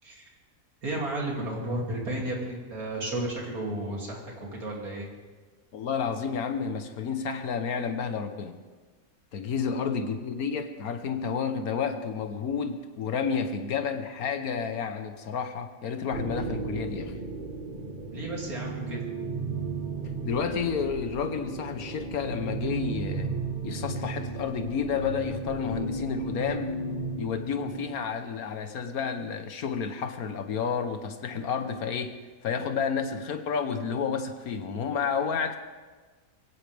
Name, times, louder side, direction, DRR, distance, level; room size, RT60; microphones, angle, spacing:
voice 1, 0.8-5.1 18.1-19.0, right 1 dB, 85° right, -2 dB, 3.4 m, -33 dB
voice 2, 5.7-8.6 9.3-17.2 20.2-23.3 23.6-26.8 27.2-35.6, left 6 dB, 85° left, 7 dB, 1.5 m, -30 dB
sound 1, 16.1-28.1, right 3 dB, 35° right, 1.6 m, -35 dB
22.5 x 17.0 x 3.5 m, 1.4 s
omnidirectional pair, 1.5 m